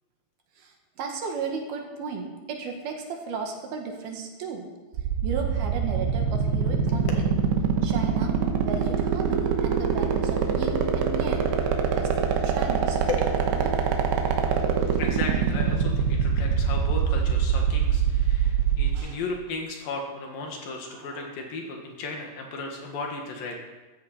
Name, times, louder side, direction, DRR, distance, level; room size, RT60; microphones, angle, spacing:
voice 1, 0.6-4.7 5.2-7.2 7.8-11.5 12.0-13.0 13.5-14.1 18.9-19.2 20.9-21.3, right 5 dB, 70° right, 2 dB, 3.4 m, -35 dB
sound 1, 4.9-19.0, right 8 dB, 90° right, 3.3 m, -23 dB
voice 2, 13.1-13.4 15.0-23.6, left 3 dB, 65° left, 2 dB, 3.3 m, -35 dB
15.0 x 14.0 x 4.3 m, 1.2 s
omnidirectional pair, 4.6 m